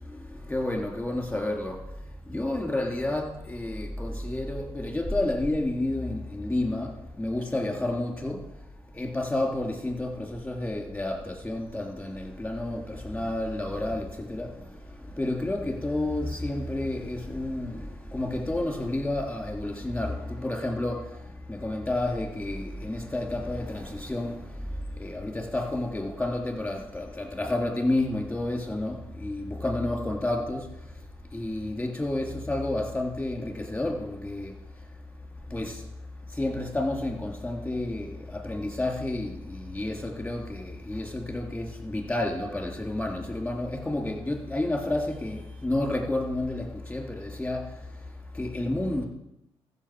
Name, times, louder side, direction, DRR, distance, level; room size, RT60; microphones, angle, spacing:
voice 1, 0.5-1.7 2.3-6.9 7.2-8.4 8.9-14.5 15.2-21.0 21.5-24.4 25.0-30.6 31.3-34.5 35.5-35.8 36.4-47.6 48.3-49.1, left 1 dB, 10° left, 2 dB, 3.2 m, -30 dB
14.5 x 6.4 x 5.0 m, 0.86 s
supercardioid pair, 50°, 12 cm